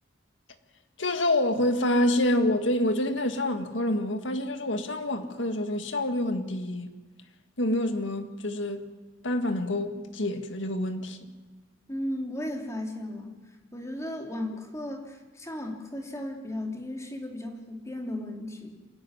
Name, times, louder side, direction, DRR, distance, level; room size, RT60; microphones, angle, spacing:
voice 1, 1.0-6.9 7.6-8.8 9.2-11.2, left 1 dB, 75° left, 1.9 m, -27 dB
voice 2, 11.9-13.3 13.7-18.8, left 1 dB, 15° left, 3.1 m, -35 dB
27.5 x 12.0 x 9.7 m
head